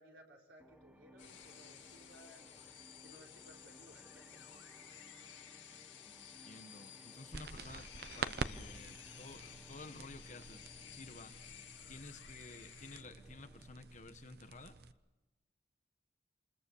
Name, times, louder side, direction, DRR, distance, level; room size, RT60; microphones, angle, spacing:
voice 1, 0.0-2.4 3.0-4.4, equal, 85° right, 0 dB, 4.5 m, -60 dB
sound 1, 0.6-13.9, equal, 5° right, 0.8 m, -62 dB
sound 2, 1.2-13.0, left 10 dB, 80° left, 2.1 m, -55 dB
voice 2, 6.0-11.4 11.9-14.8, left 3 dB, 40° left, 8 dB, 1.2 m, -53 dB
sound 3, 7.3-14.9, right 4 dB, 60° right, 0.8 m, -47 dB
28.0 x 21.0 x 7.1 m, 1.1 s
head